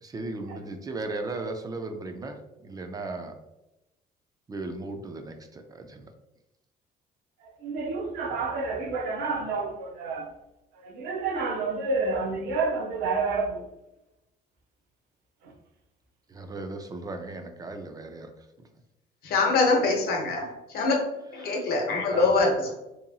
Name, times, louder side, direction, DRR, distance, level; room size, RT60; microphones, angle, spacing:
voice 1, 0.0-3.3 4.5-6.1 16.3-18.5 21.4-21.6 22.1-22.3, right 2 dB, 20° right, 0.3 m, -36 dB
voice 2, 7.4-10.3 10.7-13.6 15.4-15.5, right 3 dB, 85° right, 0.6 m, -29 dB
voice 3, 19.2-20.9 21.3-22.7, left 3 dB, 65° left, 0.8 m, -24 dB
2.8 x 2.6 x 2.3 m
cardioid pair, 110°, 17 cm